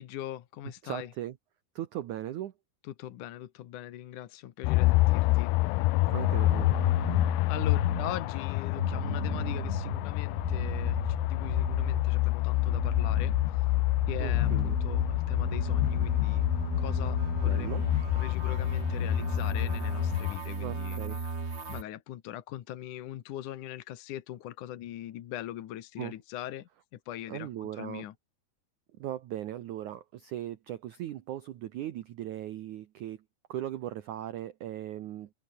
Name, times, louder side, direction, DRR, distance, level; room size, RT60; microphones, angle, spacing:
voice 1, 0.0-1.1 3.0-5.5 7.5-13.7 14.1-16.5 16.8-21.3 21.7-28.1, left 12 dB, 65° left, 2.1 m, -41 dB
voice 2, 0.8-1.4 1.7-2.5 6.1-6.7 14.2-14.8 17.4-17.8 20.6-21.2 26.0-26.1 27.3-28.1 29.0-33.2 33.5-35.3, right 12 dB, 85° right, 1.7 m, -38 dB
sound 1, 4.6-20.4, left 21 dB, 85° left, 2.3 m, -27 dB
sound 2, 6.1-8.4 8.7-12.2 12.5-21.8, right 4 dB, 40° right, 0.9 m, -36 dB
omnidirectional pair, 5.1 m